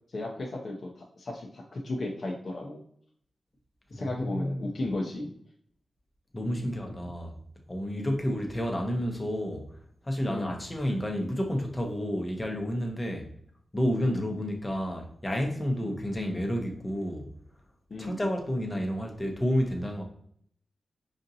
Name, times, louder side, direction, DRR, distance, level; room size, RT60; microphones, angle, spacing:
voice 1, 0.1-2.8 3.9-5.3 7.9-8.1 10.3-10.6 14.0-14.2 17.9-18.2, left 2 dB, 55° left, -2 dB, 0.7 m, -35 dB
voice 2, 3.9-4.6 6.3-7.3 7.7-9.7 10.0-13.3 13.7-17.3 18.0-20.0, equal, 20° left, 2 dB, 0.7 m, -30 dB
5.0 x 2.7 x 2.5 m, 0.65 s
wide cardioid pair, 95°, 0 cm